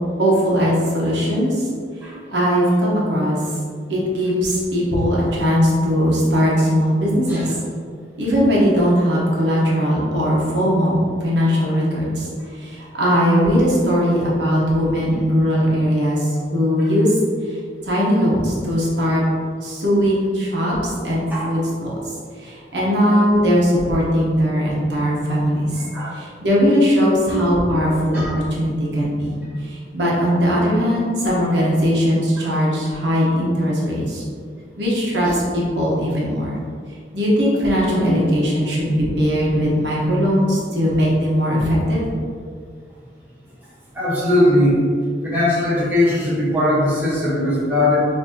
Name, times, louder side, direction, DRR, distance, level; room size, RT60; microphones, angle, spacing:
voice 1, 0.2-1.7 2.3-3.4 3.9-7.5 8.2-11.0 11.2-12.3 12.6-17.2 17.8-19.2 19.6-20.8 21.0-21.9 22.4-25.8 26.1-34.2 34.8-36.6 37.1-42.0, equal, 80° right, -5 dB, 1.1 m, -19 dB
voice 2, 43.9-44.8 45.2-48.1, left 1 dB, 10° right, -9 dB, 1.1 m, -19 dB
5.8 x 2.7 x 2.8 m, 2.1 s
head